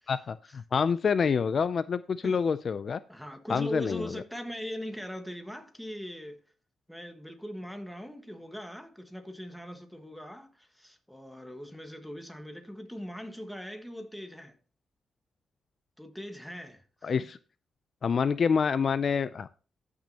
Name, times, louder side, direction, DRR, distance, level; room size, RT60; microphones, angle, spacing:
voice 1, 0.1-3.0 3.5-4.2 17.0-17.4 18.0-19.5, left 6 dB, 50° left, 0.4 m, -27 dB
voice 2, 3.1-6.4 6.9-14.5 16.0-17.1, equal, ahead, 1.5 m, -40 dB
13.5 x 6.1 x 2.8 m
cardioid pair, 110°, 0 cm